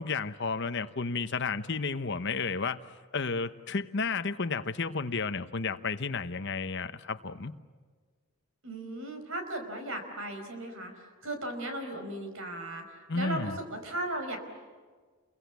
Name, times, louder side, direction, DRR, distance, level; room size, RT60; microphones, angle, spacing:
voice 1, 0.0-2.8 3.1-7.5 13.1-13.6, left 4 dB, 55° left, 10 dB, 1.0 m, -32 dB
voice 2, 8.6-10.9 11.2-12.8 13.1-14.4, right 1 dB, 65° right, 6 dB, 4.8 m, -36 dB
29.5 x 22.5 x 8.3 m, 1.5 s
head